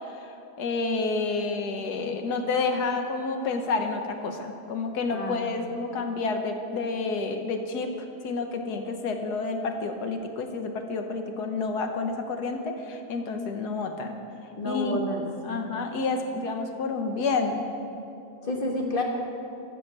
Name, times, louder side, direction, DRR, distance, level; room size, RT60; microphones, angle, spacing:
voice 1, 0.0-7.9 8.2-14.2 14.6-15.0 15.4-17.6, left 3 dB, 85° left, 5 dB, 1.6 m, -29 dB
voice 2, 5.1-5.7 14.6-15.2 15.5-15.6 18.4-19.0, left 1 dB, 35° left, 0 dB, 1.5 m, -30 dB
13.5 x 7.2 x 6.5 m, 2.7 s
omnidirectional pair, 1.7 m